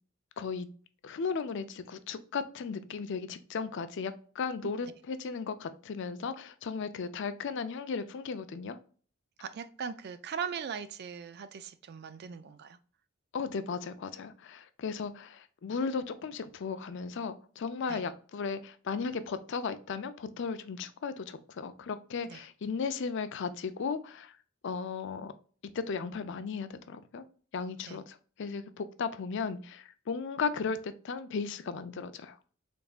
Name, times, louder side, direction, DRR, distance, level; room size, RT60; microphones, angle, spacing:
voice 1, 0.4-0.7 1.0-8.8 13.3-24.4 24.6-25.3 25.7-27.2 27.5-32.4, left 5 dB, 60° left, 0.4 m, -36 dB
voice 2, 9.4-12.8 17.9-18.1 22.2-22.4 27.8-28.0, right 6 dB, 50° right, 0.4 m, -40 dB
3.9 x 3.5 x 2.3 m
head